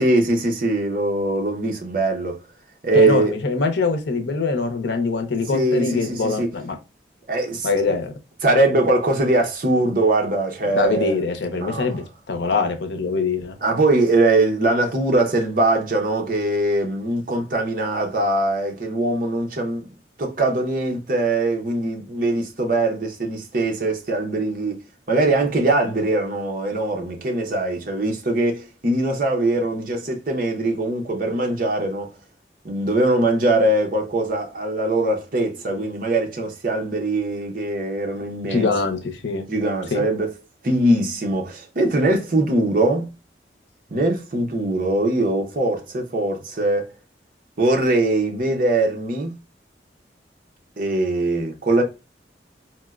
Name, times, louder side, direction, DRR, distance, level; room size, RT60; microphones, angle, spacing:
voice 1, 0.0-2.4 2.8-3.3 5.5-6.5 7.3-8.0 8.4-11.2 11.6-11.9 13.6-19.9 20.2-24.8 25.1-32.1 32.6-38.7 39.5-40.3 40.6-43.1 43.9-46.9 47.6-49.3 50.8-51.8, right 2 dB, 50° right, 0.7 m, -21 dB
voice 2, 2.9-6.7 7.6-8.1 10.7-13.6 38.5-39.5 39.9-40.1, left 4 dB, 80° left, 0.6 m, -23 dB
4.2 x 2.1 x 2.3 m
head